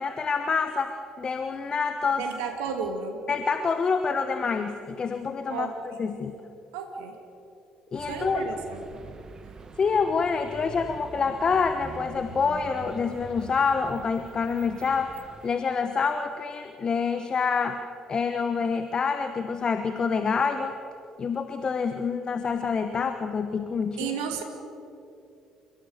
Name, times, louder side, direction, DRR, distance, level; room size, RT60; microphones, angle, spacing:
voice 1, 0.0-2.2 3.3-5.7 6.0-6.4 7.9-8.5 9.8-15.1 15.4-17.8 18.1-20.8 21.2-24.1, left 5 dB, 40° left, 8 dB, 1.3 m, -27 dB
voice 2, 2.2-3.2 5.5-5.7 6.7-7.2 8.1-8.8 24.0-24.4, right 6 dB, 75° right, 3 dB, 2.6 m, -32 dB
sound 1, 7.9-15.5, right 4 dB, 35° right, 1.9 m, -44 dB
29.5 x 17.0 x 6.7 m, 2.6 s
hypercardioid pair, 50°, 2 cm